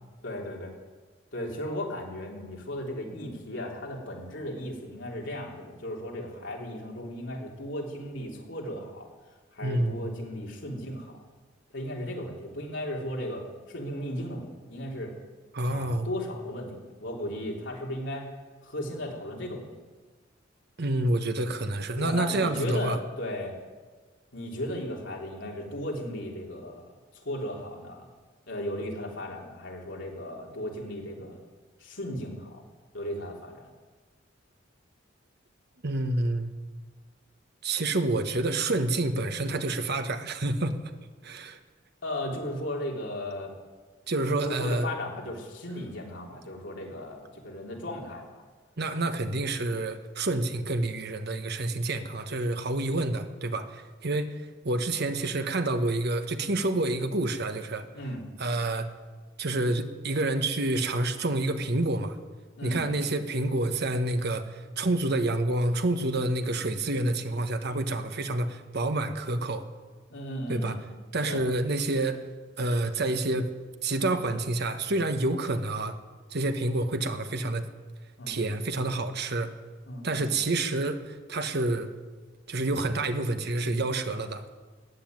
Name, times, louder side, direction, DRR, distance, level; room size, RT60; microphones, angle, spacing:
voice 1, 0.2-0.7 1.3-9.1 9.5-11.1 11.7-15.1 15.6-18.3 18.6-19.7 22.0-23.5 24.3-28.1 28.5-31.4 31.8-32.6 32.9-33.7 42.0-43.5 44.4-48.4 57.9-58.3 62.6-62.8 70.1-70.8 71.2-71.4 78.2-78.4 79.9-80.3, left 1 dB, 70° left, -1 dB, 3.5 m, -36 dB
voice 2, 9.6-10.1 15.5-16.1 20.8-23.0 35.8-36.5 37.6-40.8 41.2-41.6 44.1-44.9 48.8-57.9 58.4-58.9 59.4-62.2 62.6-69.7 70.5-70.8 71.1-72.3 72.6-73.5 73.8-76.0 76.3-77.7 78.3-79.5 80.0-81.9 82.5-84.4, right 2 dB, 60° right, 8 dB, 1.2 m, -28 dB
15.0 x 9.4 x 9.4 m, 1.4 s
head